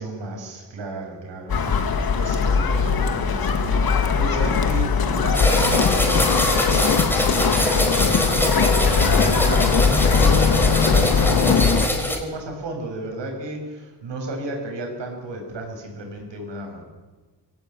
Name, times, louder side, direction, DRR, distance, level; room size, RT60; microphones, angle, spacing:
voice 1, 0.0-16.8, right 2 dB, 85° right, 2 dB, 7.4 m, -33 dB
sound 1, 1.5-11.9, left 5 dB, 55° left, 2.2 m, -20 dB
sound 2, 5.3-12.2, left 1 dB, 5° left, 4.3 m, -24 dB
23.5 x 17.0 x 9.4 m, 1.3 s
cardioid pair, 100°, 42 cm